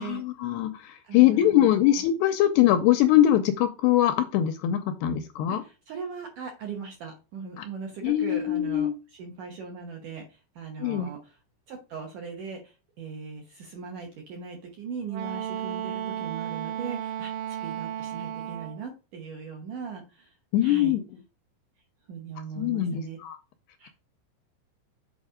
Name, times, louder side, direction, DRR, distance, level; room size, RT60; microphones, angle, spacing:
voice 1, 0.0-5.6 7.6-7.7 8.0-8.9 10.8-11.1 20.5-21.0 22.6-23.4, left 12 dB, 85° left, 8 dB, 2.4 m, -22 dB
voice 2, 1.0-2.0 5.5-11.4 11.7-21.0 22.1-23.2 23.8-23.9, right 5 dB, 70° right, 1 dB, 2.0 m, -39 dB
Wind instrument woodwind instrument, 15.1-18.8, right 11 dB, 90° right, 3.3 m, -34 dB
8.2 x 4.2 x 5.0 m, 0.31 s
omnidirectional pair, 5.3 m